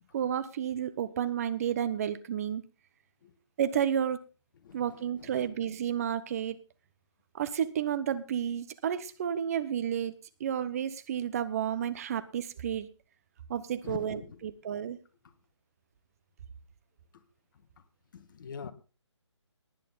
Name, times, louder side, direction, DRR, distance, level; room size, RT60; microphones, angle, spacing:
voice 1, 0.1-2.6 3.6-4.2 4.7-6.6 7.3-10.1 10.4-12.9 13.5-15.0, right 9 dB, 30° right, 0.8 m, -31 dB
voice 2, 4.6-5.5 13.8-14.5 14.8-14.9 15.2-15.3 17.1-17.2 17.5-17.8 18.1-18.7, left 6 dB, 40° left, 1.7 m, -45 dB
19.0 x 9.4 x 3.9 m
figure-of-eight pair, 150°, 16 cm